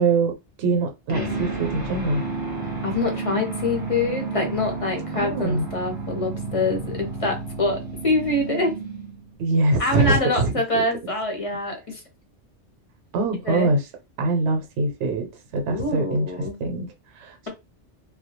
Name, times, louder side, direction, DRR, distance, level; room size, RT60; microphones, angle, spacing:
voice 1, 0.0-2.2 5.1-5.6 9.4-10.8 13.1-13.9 14.2-17.5, right 3 dB, 80° right, 0.9 m, -24 dB
sound 1, 1.1-9.3, right 3 dB, 25° right, 0.6 m, -31 dB
voice 2, 2.8-8.7 9.8-12.0 13.5-13.7 15.7-16.6, left 2 dB, 35° left, 0.6 m, -25 dB
2.2 x 2.2 x 2.7 m
omnidirectional pair, 1.2 m